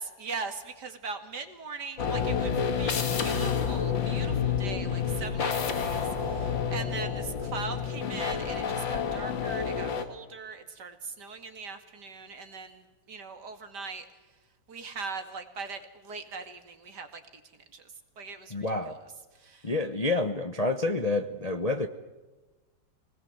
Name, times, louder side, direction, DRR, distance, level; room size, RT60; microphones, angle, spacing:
voice 1, 0.0-14.1 14.7-17.2 17.5-19.7, right 4 dB, 60° right, 7 dB, 2.7 m, -40 dB
sound 1, 2.0-10.1, left 6 dB, 85° left, 2.4 m, -29 dB
voice 2, 18.5-19.0 19.6-21.9, left 2 dB, 30° left, 7 dB, 0.8 m, -28 dB
25.5 x 19.5 x 7.9 m, 1.2 s
omnidirectional pair, 2.0 m